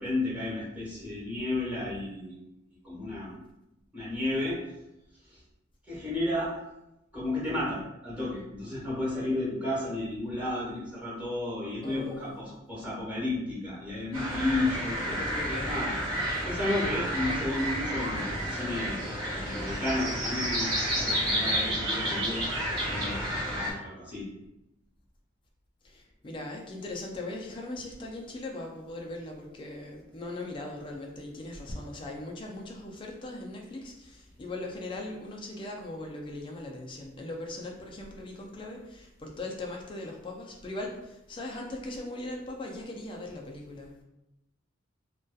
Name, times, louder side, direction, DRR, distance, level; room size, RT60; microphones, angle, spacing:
voice 1, 0.0-2.4 2.8-3.4 3.9-4.6 5.2-5.4 5.9-6.5 7.1-15.2 15.6-15.9 16.4-19.0 19.3-20.7 20.9-24.3, left 2 dB, 5° right, -8 dB, 1.0 m, -32 dB
voice 2, 11.8-12.4 15.2-15.7 25.8-44.0, left 2 dB, 25° left, 0 dB, 0.3 m, -39 dB
sound 1, 14.1-23.7, equal, 25° right, 0.9 m, -30 dB
2.6 x 2.2 x 2.2 m, 0.90 s
head